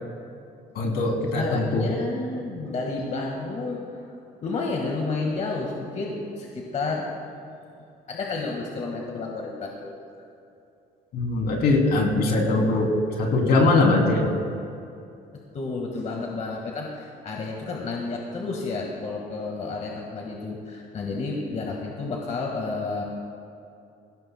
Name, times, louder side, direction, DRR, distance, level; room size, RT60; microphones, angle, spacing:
voice 1, 0.7-1.9 11.1-14.3, left 2 dB, 70° left, 0 dB, 2.9 m, -21 dB
voice 2, 1.3-4.0 4.4-7.1 7.7-10.0 15.5-23.0, left 3 dB, 45° left, -1 dB, 1.7 m, -31 dB
19.5 x 17.0 x 2.2 m, 2.6 s
cardioid pair, 110°, 17 cm